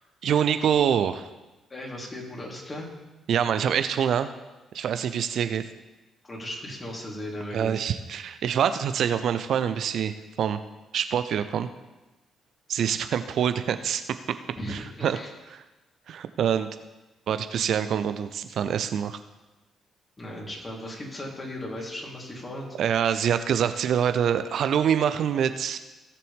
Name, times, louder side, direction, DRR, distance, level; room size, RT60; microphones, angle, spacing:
voice 1, 0.2-1.3 3.3-4.3 4.7-5.7 7.5-10.6 10.9-11.7 12.7-14.0 14.7-15.2 16.1-16.7 17.3-19.2 22.8-25.8, right 8 dB, 60° right, 11 dB, 0.5 m, -25 dB
voice 2, 1.7-2.9 6.2-7.8 14.6-15.3 20.2-22.7, left 1 dB, 30° left, -2 dB, 3.5 m, -36 dB
17.5 x 6.8 x 3.6 m, 1.1 s
hypercardioid pair, 45°, 0 cm